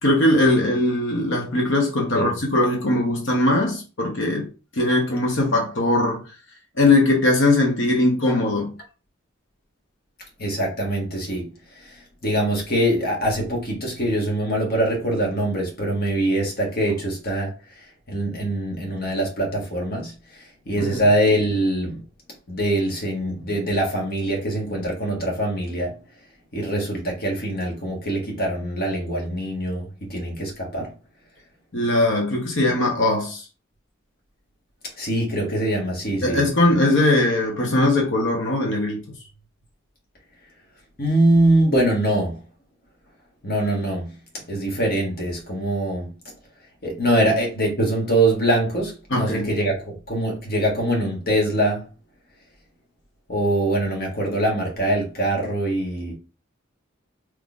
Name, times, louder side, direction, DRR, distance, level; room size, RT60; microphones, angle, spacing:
voice 1, 0.0-4.5 4.8-6.2 6.8-8.7 20.8-21.1 31.7-33.4 36.2-39.0 49.1-49.5, left 2 dB, 65° left, 0.9 m, -20 dB
voice 2, 10.4-11.5 12.2-17.5 18.1-20.1 20.7-22.0 22.5-25.9 26.5-30.9 35.0-36.5 41.0-42.3 43.4-44.1 44.5-46.1 46.8-51.8 53.3-56.1, right 1 dB, 50° left, 1.3 m, -23 dB
3.7 x 3.1 x 2.4 m
head